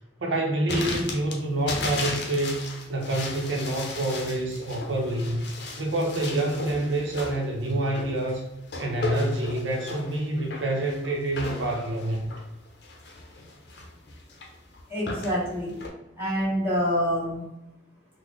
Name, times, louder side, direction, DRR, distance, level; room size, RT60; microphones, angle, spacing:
voice 1, 0.2-2.6 2.9-5.4 5.8-8.4 8.8-12.3, right 1 dB, 80° right, 0 dB, 0.6 m, -27 dB
sound 1, 0.7-15.9, left 2 dB, 60° left, 0.6 m, -36 dB
voice 2, 14.9-15.7 16.2-17.4, equal, 10° right, -9 dB, 1.4 m, -26 dB
3.9 x 2.1 x 3.1 m, 0.90 s
head